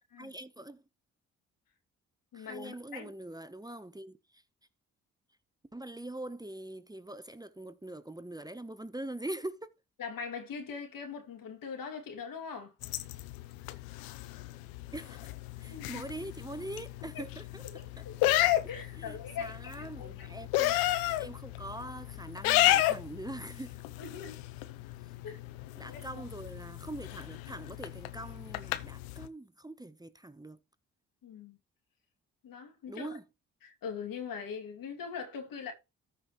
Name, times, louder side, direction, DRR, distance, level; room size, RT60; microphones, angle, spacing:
voice 1, 0.2-0.8 2.3-4.4 5.7-9.7 14.9-15.2 15.6-17.6 18.0-18.1 19.0-23.8 25.8-30.6 32.9-33.2, right 1 dB, 10° right, 1.0 m, -43 dB
voice 2, 2.3-3.1 10.0-12.7 15.7-16.1 17.6-18.2 18.7-20.3 24.0-24.4 25.2-25.4 25.9-26.0 31.2-31.6 32.4-33.1 33.6-35.7, left 6 dB, 70° left, 2.6 m, -41 dB
sound 1, 12.8-29.3, left 15 dB, 85° left, 0.7 m, -33 dB
14.0 x 5.3 x 3.1 m
hypercardioid pair, 45°, 35 cm